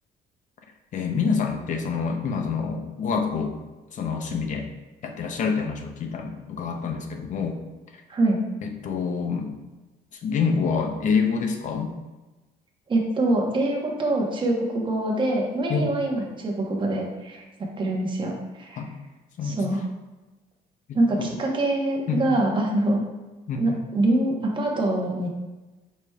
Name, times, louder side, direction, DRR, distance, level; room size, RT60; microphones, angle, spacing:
voice 1, 0.9-3.5 3.9-4.7 5.0-7.6 8.6-9.5 10.2-11.9 15.7-15.9 18.8-18.9 19.4-19.6 20.9-21.3 22.1-22.2 23.5-23.8, left 5 dB, 50° left, 5 dB, 0.6 m, -27 dB
voice 2, 8.1-8.4 12.9-18.8 19.4-19.8 20.9-23.0 23.6-25.3, right 1 dB, 30° right, 0 dB, 1.0 m, -24 dB
4.9 x 4.5 x 2.3 m, 1.1 s
cardioid pair, 110°, 17 cm